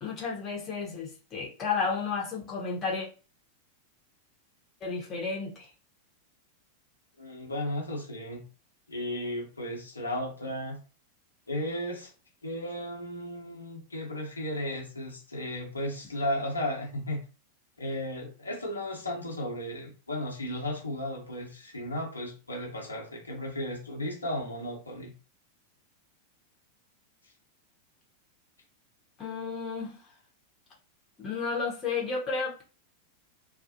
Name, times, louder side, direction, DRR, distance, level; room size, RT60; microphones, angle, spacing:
voice 1, 0.0-3.1 4.8-5.7 29.2-30.0 31.2-32.6, left 5 dB, 25° left, -2 dB, 0.9 m, -32 dB
voice 2, 7.2-8.5 8.9-10.8 11.5-12.1 12.4-17.2 17.8-25.1, left 1 dB, 80° left, -1 dB, 0.7 m, -34 dB
2.4 x 2.0 x 2.7 m, 0.35 s
figure-of-eight pair, 90°, 0 cm